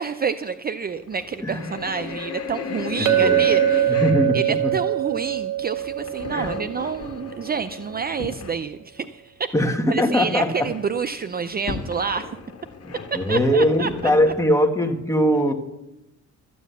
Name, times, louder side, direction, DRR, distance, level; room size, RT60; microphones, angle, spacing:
voice 1, 0.0-4.0 4.3-9.5 9.9-12.2 13.3-13.9, right 6 dB, 30° right, 12 dB, 0.6 m, -28 dB
sound 1, 0.9-8.6 9.0-9.1 9.5-9.6 9.8-10.3 10.6-14.4, left 5 dB, 50° left, 1.8 m, -35 dB
voice 2, 3.0-3.5 3.9-4.7 6.3-6.5 9.5-10.7 12.8-15.5, equal, 10° left, 3 dB, 1.9 m, -21 dB
Chink clink, 3.1-7.5, right 12 dB, 85° right, 1.0 m, -23 dB
13.0 x 9.4 x 7.0 m, 0.90 s
cardioid pair, 90°, 30 cm